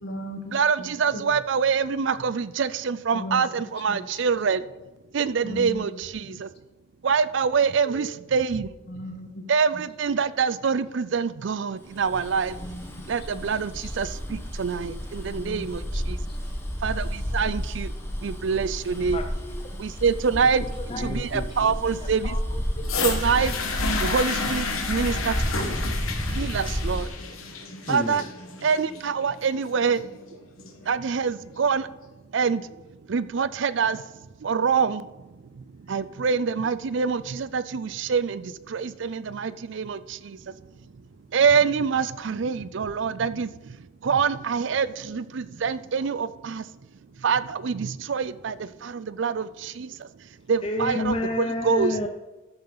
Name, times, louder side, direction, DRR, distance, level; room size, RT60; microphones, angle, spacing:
voice 1, 0.0-1.2 3.1-3.5 3.9-4.2 5.4-5.8 6.3-6.4 8.9-9.4 9.7-9.8 12.5-13.1 13.3-13.4 13.8-13.9 15.3-15.6 18.8-19.0, left 1 dB, 50° left, 4 dB, 1.4 m, -37 dB
voice 2, 0.5-4.6 5.1-6.5 7.0-8.7 9.5-12.6 13.1-15.8 16.8-17.9 18.2-19.2 19.8-20.6 21.0-22.4 23.0-23.6 24.0-25.8 26.3-27.1 27.9-28.2 28.6-30.0 30.8-31.9 32.3-32.8 33.1-40.6 41.3-43.8 44.0-46.7 47.2-50.1 50.5-52.0, right 6 dB, 65° right, 16 dB, 0.4 m, -25 dB
Bus, 11.9-27.1, equal, 10° left, 1.2 m, -32 dB
voice 3, 19.1-20.0 20.5-21.8 22.2-22.6 27.9-28.3 50.6-52.1, left 2 dB, 25° left, 4 dB, 0.5 m, -31 dB
sound 1, 22.8-30.8 31.7-31.8, left 4 dB, 90° left, 1.4 m, -31 dB
14.0 x 6.7 x 4.0 m, 1.1 s
head